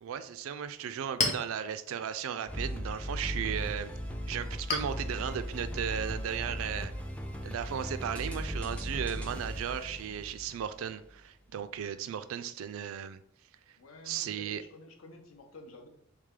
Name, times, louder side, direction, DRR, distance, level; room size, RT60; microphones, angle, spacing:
voice 1, 0.0-3.9 4.3-6.9 7.4-13.2 14.0-14.6, right 8 dB, 70° right, 11 dB, 0.3 m, -36 dB
Chink clink, 0.6-7.8, left 3 dB, 35° left, 0.7 m, -40 dB
sound 1, 2.5-10.9, equal, 5° left, 0.4 m, -37 dB
voice 2, 13.8-15.9, left 2 dB, 75° left, 4 dB, 0.7 m, -51 dB
3.3 x 3.3 x 3.6 m, 0.71 s
head